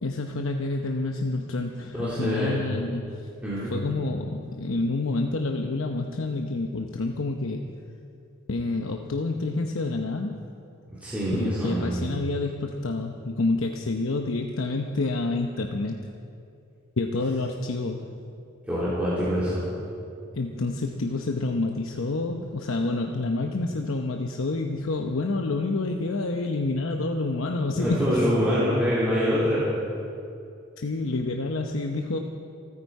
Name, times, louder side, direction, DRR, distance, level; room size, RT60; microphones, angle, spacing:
voice 1, 0.0-3.2 3.7-7.7 8.5-10.5 11.3-16.0 17.0-18.2 20.3-28.3 30.8-32.2, left 2 dB, 80° left, 3 dB, 0.8 m, -28 dB
voice 2, 1.9-2.6 3.4-3.7 11.0-12.1 18.7-19.6 27.7-29.6, equal, 5° right, -10 dB, 3.1 m, -25 dB
28.0 x 9.7 x 4.8 m, 2.6 s
head